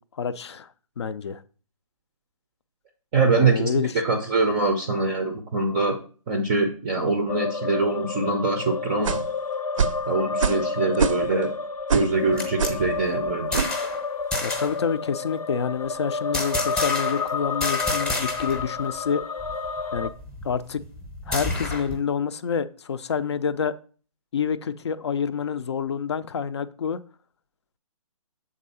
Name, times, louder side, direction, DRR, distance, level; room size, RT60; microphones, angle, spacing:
voice 1, 0.2-0.7 1.0-1.4 3.3-3.9 14.4-19.2 19.9-20.1 20.4-20.8 21.3-23.7 24.3-27.0, left 7 dB, 50° left, 13 dB, 0.5 m, -27 dB
voice 2, 3.1-3.7 4.0-6.0 6.3-9.2 10.1-11.5 11.9-13.6, right 3 dB, 15° right, 5 dB, 0.5 m, -23 dB
sound 1, 7.3-20.1, left 4 dB, 85° left, 0.8 m, -30 dB
sound 2, 9.0-9.3 9.8-10.0 10.4-10.7 10.9-11.4 11.9-12.2 12.6-12.8 13.6-13.8, right 6 dB, 60° right, 0.5 m, -24 dB
sound 3, 12.1-14.0 14.3-14.8 16.3-17.3 17.6-18.7 19.0-19.1 19.4-22.0, left 2 dB, 5° left, 0.8 m, -30 dB
7.2 x 3.8 x 5.4 m, 0.40 s
hypercardioid pair, 160°, 19 cm